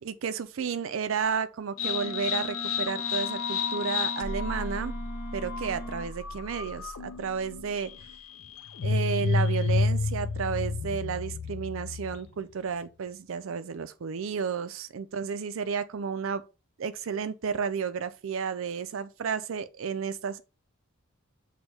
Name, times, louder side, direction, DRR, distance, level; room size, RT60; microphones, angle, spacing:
voice 1, 0.0-5.0 5.3-7.9 8.8-16.4 16.8-20.4, right 6 dB, 65° right, 0.4 m, -32 dB
sound 1, 1.8-12.4, left 4 dB, 70° left, 0.5 m, -31 dB
Wind instrument woodwind instrument, 1.8-6.1, equal, 30° left, 0.8 m, -40 dB
6.2 x 2.3 x 3.3 m
head